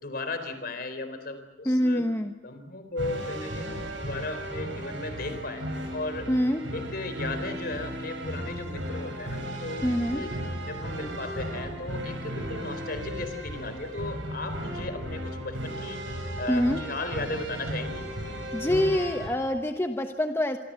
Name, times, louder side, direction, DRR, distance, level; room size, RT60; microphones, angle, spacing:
voice 1, 0.0-2.0 2.4-5.6 5.9-6.3 6.7-10.3 10.7-16.0 16.4-18.0, left 2 dB, 55° left, 9 dB, 4.1 m, -36 dB
voice 2, 1.6-2.3 6.3-6.7 9.8-10.2 16.5-16.8 18.5-20.6, equal, 15° left, 5 dB, 1.1 m, -25 dB
sound 1, 3.0-19.3, equal, 85° right, 7.3 m, -35 dB
27.5 x 24.0 x 7.7 m, 1.1 s
head